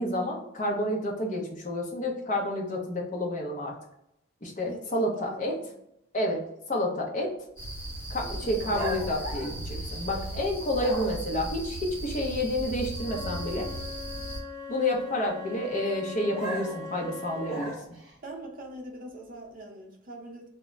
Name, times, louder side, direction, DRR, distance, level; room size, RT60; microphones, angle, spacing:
voice 1, 0.0-3.7 4.4-5.5 6.1-7.3 8.1-13.7 14.7-18.0, left 1 dB, 40° left, 0 dB, 0.5 m, -30 dB
voice 2, 4.6-5.7 8.2-9.0 18.2-20.5, right 1 dB, 45° right, 0 dB, 0.6 m, -42 dB
sound 1, 7.6-14.4, right 1 dB, 75° left, 1.0 m, -37 dB
sound 2, 8.7-10.3 10.7-11.4 16.3-18.1, equal, 5° right, 0.8 m, -37 dB
Wind instrument woodwind instrument, 12.9-17.8, left 3 dB, 90° right, 0.5 m, -41 dB
2.1 x 2.0 x 3.6 m, 0.80 s
head